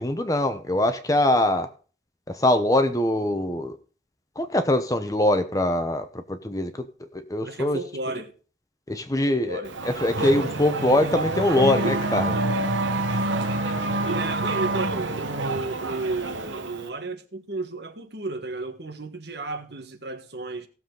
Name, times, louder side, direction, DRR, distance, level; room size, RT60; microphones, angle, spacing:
voice 1, 0.0-1.7 2.3-3.7 4.4-6.9 7.1-7.8 8.9-12.4, left 1 dB, 20° left, 0.9 m, -23 dB
voice 2, 7.4-8.3 9.3-9.7 14.1-20.7, right 3 dB, 55° right, 1.4 m, -33 dB
Race car auto racing / Accelerating revving vroom, 9.6-16.9, right 2 dB, 80° right, 1.3 m, -27 dB
17.0 x 7.2 x 3.9 m
head